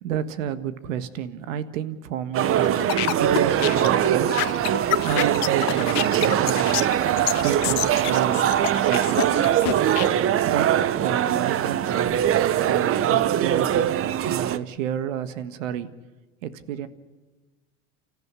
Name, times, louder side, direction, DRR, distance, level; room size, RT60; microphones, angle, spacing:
voice 1, 0.0-4.8 5.0-6.9 7.4-8.5 8.8-9.5 10.4-15.9 16.4-16.9, right 9 dB, 90° right, 13 dB, 1.6 m, -31 dB
sound 1, 2.3-14.6, right 10 dB, 35° right, 0.9 m, -22 dB
sound 2, 2.6-10.1, left 23 dB, 70° left, 0.8 m, -28 dB
29.5 x 15.0 x 9.7 m, 1.2 s
supercardioid pair, 120°, 38 cm